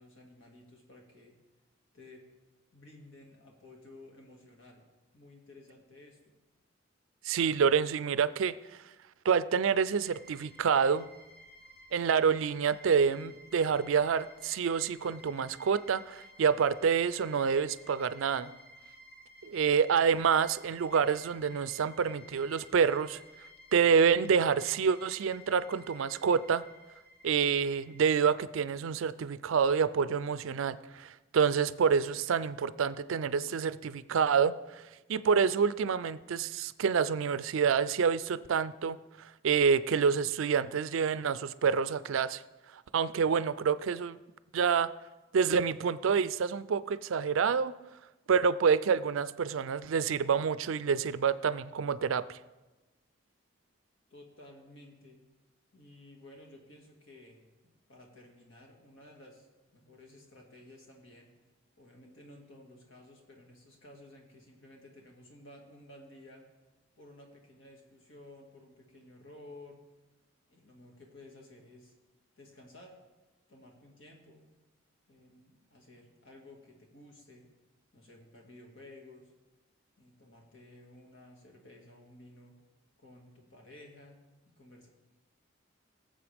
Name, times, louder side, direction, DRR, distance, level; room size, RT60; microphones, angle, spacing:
voice 1, 0.0-1.4 1.9-2.2 2.7-4.8 5.1-6.3 54.1-55.2 55.7-57.4 57.9-59.5 59.7-61.3 61.8-66.4 67.0-69.8 70.5-71.9 72.4-73.0 73.5-74.4 75.1-77.5 77.9-79.3 80.0-82.6 83.0-84.2 84.5-84.9, left 1 dB, 70° left, 0 dB, 2.1 m, -54 dB
voice 2, 7.2-8.5 9.3-11.1 11.9-18.5 19.4-23.2 23.7-26.6 27.2-34.8 35.1-42.4 42.7-44.2 44.5-44.9 45.3-47.7 48.3-52.4, right 6 dB, 75° right, 16 dB, 0.4 m, -27 dB
sound 1, 10.0-28.4, equal, 45° left, 1.7 m, -55 dB
18.0 x 7.5 x 3.5 m, 1.1 s
head